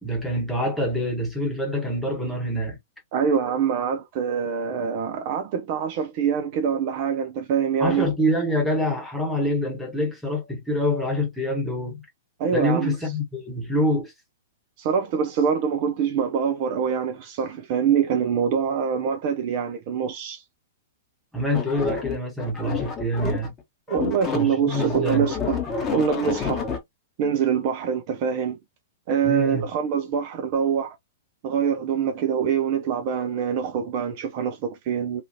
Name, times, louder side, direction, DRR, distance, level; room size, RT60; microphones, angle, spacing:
voice 1, 0.0-2.8 7.8-12.0 12.5-14.1 21.3-23.5 24.3-25.3 29.2-29.7, equal, 5° left, 1.1 m, -26 dB
voice 2, 3.1-8.1 12.4-12.9 14.8-20.4 23.9-25.6 25.9-26.7 27.2-28.6 29.1-31.0 31.4-35.2, right 7 dB, 40° right, 0.5 m, -24 dB
sound 1, 21.5-23.6 23.9-26.8, left 6 dB, 20° left, 0.9 m, -29 dB
2.8 x 2.4 x 2.6 m
figure-of-eight pair, 105°, 0 cm